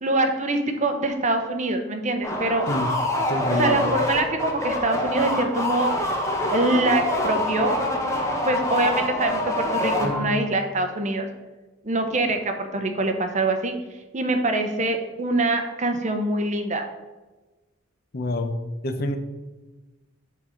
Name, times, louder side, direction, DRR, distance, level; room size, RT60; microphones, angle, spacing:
voice 1, 0.0-2.7 3.5-5.9 6.5-7.8 8.4-11.3 11.8-13.7 14.1-16.8, right 2 dB, 35° right, 6 dB, 0.8 m, -24 dB
sound 1, 2.2-10.5, left 1 dB, 15° left, 1.0 m, -26 dB
voice 2, 3.3-3.8 18.1-18.5 18.8-19.2, left 2 dB, 50° left, 8 dB, 0.7 m, -26 dB
7.4 x 4.0 x 5.7 m, 1.2 s
head